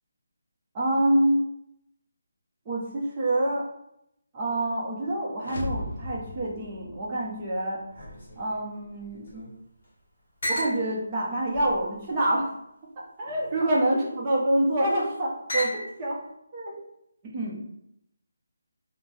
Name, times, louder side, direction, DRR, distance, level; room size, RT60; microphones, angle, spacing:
voice 1, 0.7-1.4 2.7-3.7 4.3-8.1 8.4-9.5 10.5-12.5 13.0-16.2 16.5-16.8 17.3-17.6, right 1 dB, 20° right, -6 dB, 0.6 m, -27 dB
sound 1, 5.4-7.5, left 2 dB, 60° left, 0.4 m, -36 dB
sound 2, 7.9-9.5 9.8-9.9 10.4-10.8 11.5-12.4 13.2-13.6 14.5-15.0 15.5-16.1, left 1 dB, 45° left, 1.4 m, -35 dB
2.7 x 2.1 x 3.1 m, 0.78 s
figure-of-eight pair, 170°, 0 cm